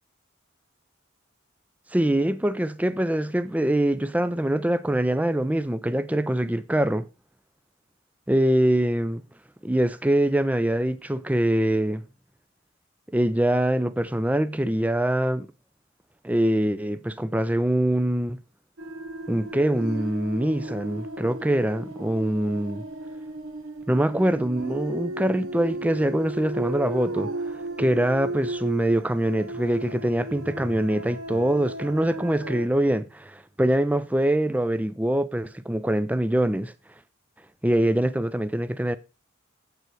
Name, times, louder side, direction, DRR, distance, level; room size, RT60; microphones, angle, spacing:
voice 1, 1.9-7.0 8.3-9.2 9.6-12.0 13.1-15.5 16.2-18.4 19.3-22.8 23.9-36.7 37.6-39.0, right 1 dB, 5° right, 0.4 m, -24 dB
sound 1, 18.8-32.7, right 1 dB, 80° right, 1.2 m, -35 dB
8.0 x 6.9 x 4.4 m
head